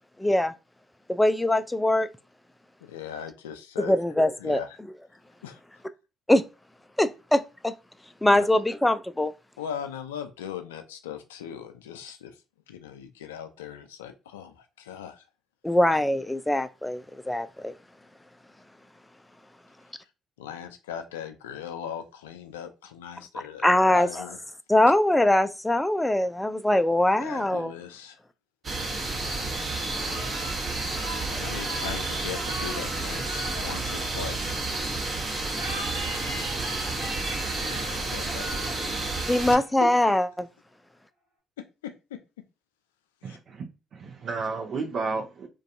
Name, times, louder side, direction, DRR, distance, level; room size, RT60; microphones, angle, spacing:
voice 1, 0.2-0.5 1.1-2.1 3.9-4.6 6.3-6.4 7.0-7.7 8.2-9.3 15.6-17.7 23.6-24.1 24.7-27.7 39.3-40.5, left 1 dB, 10° left, 0.3 m, -22 dB
voice 2, 2.8-3.9 4.4-4.8 5.4-5.6 8.3-8.6 9.6-12.3 12.7-15.2 20.4-24.4 27.2-28.2 31.4-34.6 37.6-38.9 39.5-39.9 41.6-42.2 43.2-43.4, left 8 dB, 90° left, 0.3 m, -39 dB
sound 1, 28.6-39.5, right 2 dB, 40° right, 1.0 m, -31 dB
sound 2, 29.9-34.7 35.5-39.9, right 1 dB, 85° right, 1.0 m, -40 dB
voice 3, 43.2-43.6 43.9-45.5, right 4 dB, 60° right, 0.5 m, -32 dB
2.4 x 2.3 x 2.6 m
hypercardioid pair, 50°, 0 cm